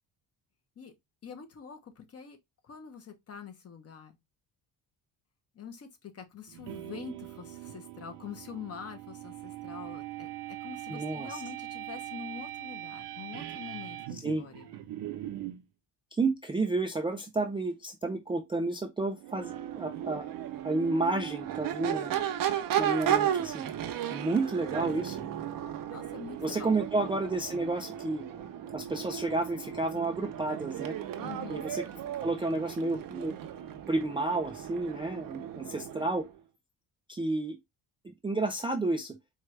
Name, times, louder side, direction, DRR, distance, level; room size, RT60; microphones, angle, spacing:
voice 1, 1.2-2.4 2.6-4.1 5.5-10.3 10.6-14.7 25.9-26.7 31.2-31.6, left 7 dB, 35° left, 0.8 m, -45 dB
sound 1, 6.5-15.6, right 13 dB, 80° right, 0.9 m, -41 dB
voice 2, 10.9-11.4 14.2-14.4 16.2-20.2 20.6-22.2 22.8-23.7 24.1-25.2 26.4-28.3 28.7-31.0 31.5-31.8 32.2-33.3 33.9-36.3 37.1-37.6 38.0-39.2, right 2 dB, 15° right, 0.3 m, -31 dB
Crowd / Race car auto racing / Accelerating revving vroom, 19.2-36.3, right 10 dB, 55° right, 0.6 m, -35 dB
4.6 x 2.3 x 3.1 m
cardioid pair, 130°, 41 cm